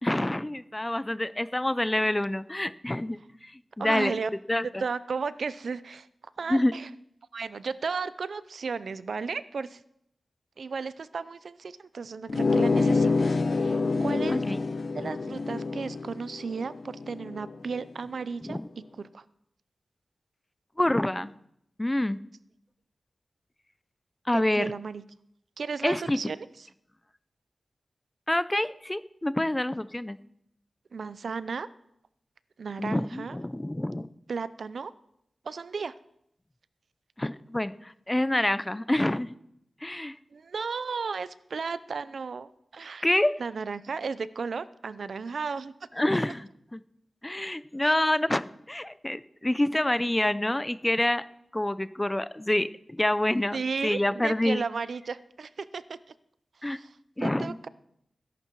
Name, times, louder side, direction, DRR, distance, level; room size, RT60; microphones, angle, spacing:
voice 1, 0.0-3.5 3.8-4.1 4.5-4.8 6.5-6.7 14.3-14.6 18.4-18.7 20.8-21.3 21.8-22.2 24.3-24.7 25.8-26.2 28.3-30.2 32.8-34.1 37.2-39.3 39.8-40.1 43.0-43.3 46.0-46.8 47.2-51.2 51.5-53.6 53.8-54.6 56.6-56.8 57.2-57.6, left 1 dB, 15° left, 15 dB, 0.5 m, -27 dB
voice 2, 3.8-4.3 4.8-6.1 6.4-6.9 7.3-9.8 10.6-14.4 14.9-18.6 19.0-19.2 24.3-25.0 25.6-26.5 30.9-31.7 32.6-33.4 34.3-34.9 35.4-35.9 40.3-43.1 43.4-45.7 47.8-47.9 53.5-56.0 56.7-57.0 57.2-57.7, right 5 dB, 70° right, 16 dB, 0.6 m, -34 dB
sound 1, 12.3-17.6, left 3 dB, 55° left, 0.7 m, -27 dB
20.0 x 11.0 x 4.6 m, 0.75 s
wide cardioid pair, 135°, 0 cm